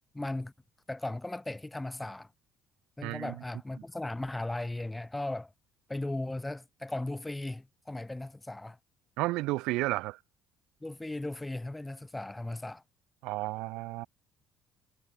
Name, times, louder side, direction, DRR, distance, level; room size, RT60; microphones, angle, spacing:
voice 1, 0.1-0.5 0.9-2.3 3.0-5.5 5.9-8.8 10.8-12.8, left 2 dB, 15° left, 2.4 m, -37 dB
voice 2, 3.0-3.3 9.2-10.2 13.2-14.1, right 20 dB, 80° right, 0.6 m, -32 dB
supercardioid pair, 65°, 0 cm